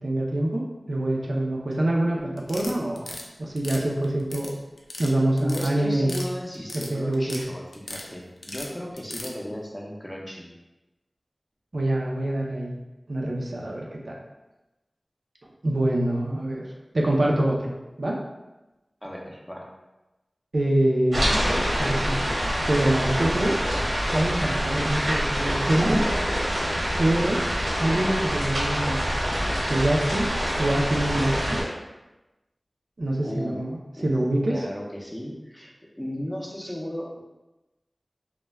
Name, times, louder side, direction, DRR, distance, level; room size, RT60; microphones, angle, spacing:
voice 1, 0.0-3.1 3.4-4.6 5.0-6.2 6.7-7.4 11.7-12.8 13.1-14.2 15.6-16.6 16.9-18.2 20.5-22.4 22.7-23.6 24.1-26.0 27.0-27.4 27.8-29.1 29.6-30.3 30.6-31.6 33.0-33.8 34.0-34.6, right 1 dB, 70° right, -2 dB, 0.4 m, -25 dB
sound 1, 2.4-3.2 3.6-4.5 4.8-5.1 5.4-6.3 6.5-7.4 7.7-8.1 8.4-9.3, left 2 dB, 90° left, 0.3 m, -37 dB
voice 2, 5.4-10.5 19.0-19.7 27.0-27.4 33.2-34.2 34.5-35.7 36.0-37.2, equal, 15° left, -2 dB, 0.5 m, -35 dB
sound 2, 21.1-31.6, equal, 90° right, 0.9 m, -26 dB
2.1 x 2.1 x 3.2 m, 1.0 s
wide cardioid pair, 60°, 0 cm